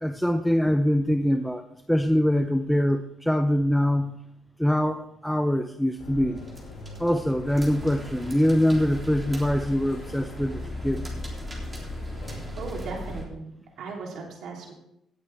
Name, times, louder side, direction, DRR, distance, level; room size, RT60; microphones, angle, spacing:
voice 1, 0.0-1.6 1.9-4.2 4.6-6.4 7.0-11.1, equal, 5° left, 7 dB, 0.6 m, -23 dB
sound 1, 6.0-13.2, left 2 dB, 85° left, 2.1 m, -38 dB
sound 2, 6.4-13.3, right 1 dB, 20° right, 3.5 m, -44 dB
voice 2, 12.6-14.7, right 4 dB, 75° right, 0 dB, 3.2 m, -37 dB
17.5 x 8.7 x 3.5 m, 0.80 s
cardioid pair, 90°, 0 cm